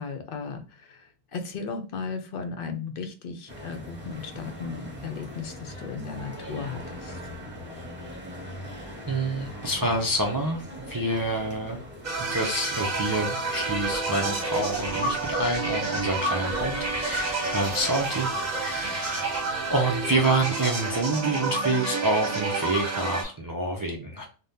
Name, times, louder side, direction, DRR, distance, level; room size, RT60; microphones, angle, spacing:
voice 1, 0.0-7.2, left 5 dB, 65° left, 7 dB, 0.7 m, -36 dB
sound 1, 3.5-20.5, equal, 10° right, 0.8 m, -42 dB
voice 2, 9.1-11.8 12.3-24.2, right 2 dB, 30° right, 1 dB, 0.4 m, -28 dB
sound 2, 12.0-23.2, right 3 dB, 45° right, 0.9 m, -29 dB
3.5 x 2.2 x 2.7 m, 0.37 s
omnidirectional pair, 1.0 m